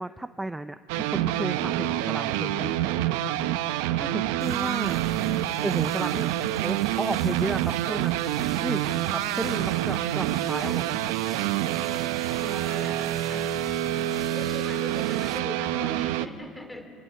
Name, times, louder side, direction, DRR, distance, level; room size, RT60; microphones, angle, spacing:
voice 1, 0.0-2.8 4.0-5.1 5.6-6.3 6.6-8.2 8.6-10.9, right 2 dB, 10° right, 11 dB, 0.7 m, -33 dB
sound 1, 0.9-16.3, right 13 dB, 80° right, 0.8 m, -27 dB
sound 2, 4.4-15.4, right 6 dB, 35° right, 2.6 m, -45 dB
voice 2, 12.3-13.9 14.3-16.9, left 1 dB, 10° left, 6 dB, 3.8 m, -40 dB
28.0 x 19.0 x 7.9 m, 2.2 s
supercardioid pair, 100°, 0 cm